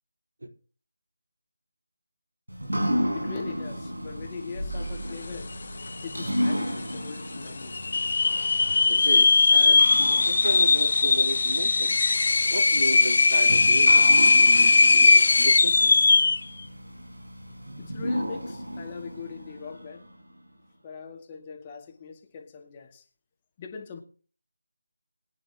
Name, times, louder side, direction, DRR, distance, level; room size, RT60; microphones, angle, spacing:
sound 1, 2.5-20.3, equal, 85° right, 4.5 m, -34 dB
voice 1, 3.1-5.6 6.0-7.9 17.8-20.1 20.8-23.0 23.6-24.0, left 5 dB, 20° left, 2 dB, 2.2 m, -41 dB
sound 2, 5.5-5.6 5.8-6.4 6.9-7.0 7.7-16.5, left 4 dB, 45° left, 1.1 m, -19 dB
voice 2, 8.9-9.9 10.2-12.1 12.5-16.0, right 1 dB, 70° right, 2 dB, 4.1 m, -34 dB
22.0 x 9.8 x 3.0 m, 0.38 s
figure-of-eight pair, 160°, 0 cm